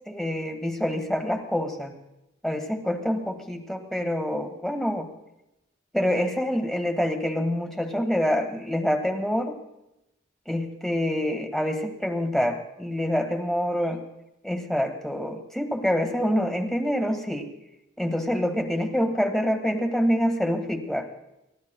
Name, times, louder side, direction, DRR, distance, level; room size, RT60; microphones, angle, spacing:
voice 1, 0.1-1.9 2.4-5.1 5.9-9.5 10.5-14.0 14.4-17.5 18.0-21.1, equal, ahead, 4 dB, 1.5 m, -26 dB
29.5 x 14.0 x 2.2 m, 0.88 s
head